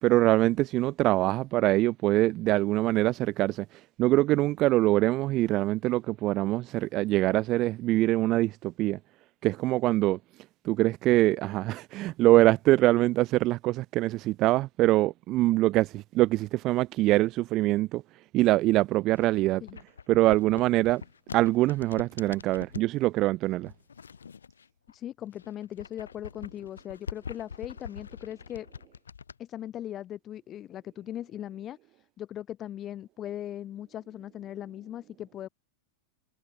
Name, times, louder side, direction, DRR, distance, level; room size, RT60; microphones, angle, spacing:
voice 1, 0.0-3.7 4.0-9.0 9.4-10.2 10.6-18.0 18.3-19.6 20.1-21.0 21.3-23.7, right 17 dB, 35° right, 0.8 m, -24 dB
sound 1, 19.1-22.9 23.6-24.9 25.3-29.4, left 6 dB, 70° left, 1.8 m, -44 dB
voice 2, 24.9-28.7 29.4-35.5, left 11 dB, 30° left, 3.1 m, -39 dB
figure-of-eight pair, 90°, 0 cm